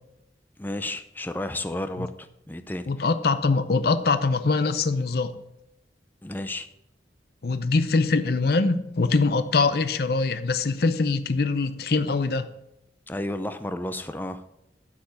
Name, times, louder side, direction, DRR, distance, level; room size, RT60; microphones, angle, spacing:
voice 1, 0.6-2.9 6.2-6.7 13.1-14.4, left 1 dB, 10° left, 10 dB, 0.5 m, -32 dB
voice 2, 2.9-5.3 7.4-12.5, left 3 dB, 60° left, 11 dB, 0.6 m, -23 dB
10.5 x 4.9 x 6.3 m, 0.83 s
head